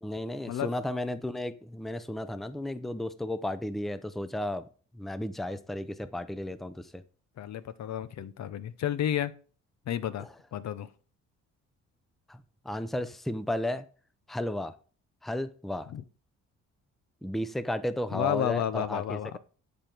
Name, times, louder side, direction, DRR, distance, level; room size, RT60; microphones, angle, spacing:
voice 1, 0.0-4.6 4.9-7.0 10.2-10.3 12.3-13.8 14.3-14.7 15.2-15.9 17.2-19.4, left 1 dB, ahead, 12 dB, 0.6 m, -34 dB
voice 2, 7.4-9.3 9.9-10.3 10.5-10.9 15.9-16.0 18.1-19.4, left 10 dB, 65° left, 15 dB, 0.8 m, -31 dB
9.8 x 5.2 x 4.5 m, 0.40 s
cardioid pair, 90°, 30 cm